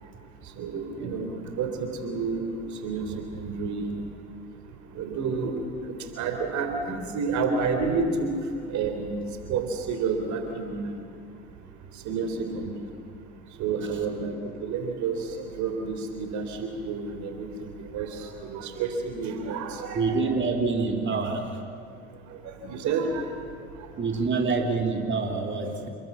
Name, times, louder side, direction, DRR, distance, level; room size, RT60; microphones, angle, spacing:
voice 1, 0.6-2.5 2.8-3.1 3.4-3.9 5.0-5.5 5.9-8.3 8.7-9.2 9.5-10.8 12.1-12.7 13.6-14.3 14.6-17.5 17.9-20.4 22.3-22.4 22.6-23.2, right 5 dB, 60° right, 5 dB, 3.7 m, -29 dB
voice 2, 20.0-21.5 24.0-25.9, right 4 dB, 35° right, 2 dB, 3.6 m, -26 dB
28.5 x 21.5 x 7.5 m, 2.4 s
hypercardioid pair, 65°, 32 cm